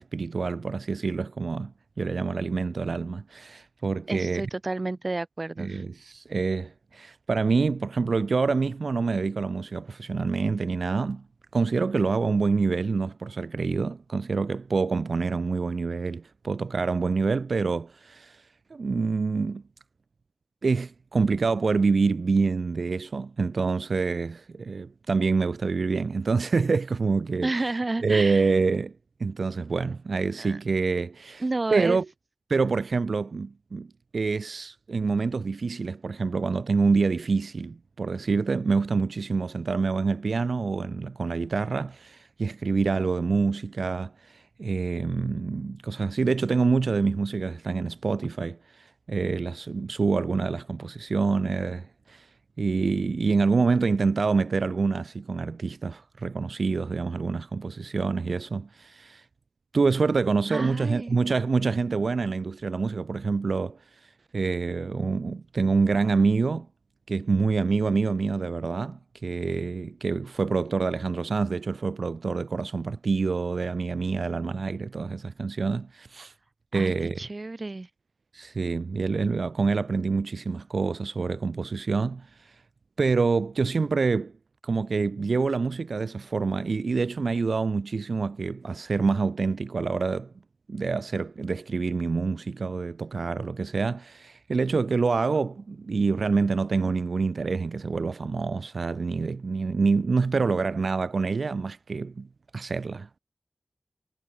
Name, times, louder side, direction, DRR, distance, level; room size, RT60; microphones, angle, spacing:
voice 1, 0.0-1.7 2.0-4.4 5.6-11.2 11.5-18.4 18.7-19.6 20.6-27.5 28.0-28.9 29.2-31.4 31.7-32.0 32.5-33.9 34.1-52.3 52.6-59.2 59.7-63.8 64.3-66.7 67.1-76.3 76.7-77.2 78.3-82.5 83.0-84.3 84.6-90.3 90.7-102.3 102.5-103.2, right 4 dB, 80° right, 2.9 m, -26 dB
voice 2, 4.1-5.8 27.4-28.5 30.4-30.6 31.4-32.0 60.5-61.2 76.7-77.9, right 2 dB, 45° right, 5.7 m, -31 dB
wide cardioid pair, 75°, 0 cm